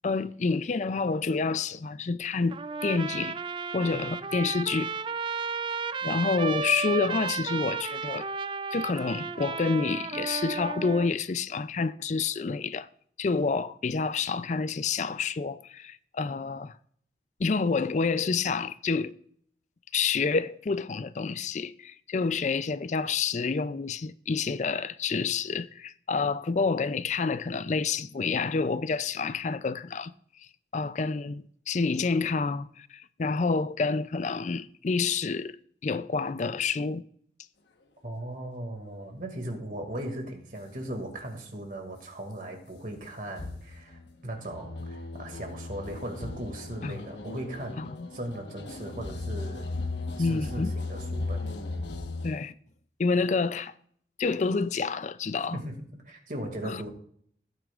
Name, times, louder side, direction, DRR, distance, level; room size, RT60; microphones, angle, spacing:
voice 1, 0.0-3.4 3.7-4.9 6.0-8.3 8.7-12.9 13.2-16.7 17.4-19.1 19.9-30.1 30.7-35.6 35.8-37.0 46.8-47.0 47.8-48.1 50.2-50.7 52.2-52.5 53.0-53.7 54.2-55.6 56.6-56.8, left 4 dB, 40° left, 0.4 m, -28 dB
Trumpet, 2.5-11.1, right 5 dB, 30° right, 0.3 m, -33 dB
voice 2, 38.0-49.7 50.2-51.5 55.5-56.9, right 1 dB, 50° right, 2.2 m, -38 dB
sound 1, 43.4-52.4, left 2 dB, 85° left, 1.2 m, -36 dB
16.5 x 9.2 x 2.5 m
head